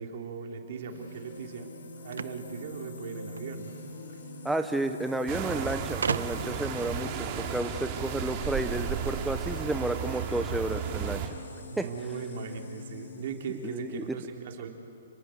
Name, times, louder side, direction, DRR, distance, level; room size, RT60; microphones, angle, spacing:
voice 1, 0.0-1.7 2.0-3.8 4.1-4.2 11.7-14.7, right 6 dB, 55° right, 3 dB, 3.4 m, -38 dB
sound 1, 0.7-14.1, left 4 dB, 80° left, 5.9 m, -45 dB
sound 2, 2.1-3.5 4.6-4.7 4.9-5.0 6.0-6.7, right 5 dB, 85° right, 0.8 m, -34 dB
voice 2, 4.4-11.4 11.8-11.9 13.6-14.0, right 2 dB, 5° right, 6 dB, 0.7 m, -32 dB
sound 3, 5.3-11.3, right 8 dB, 30° right, 2.6 m, -34 dB
30.0 x 21.0 x 7.9 m, 2.7 s
hypercardioid pair, 150°, 0 cm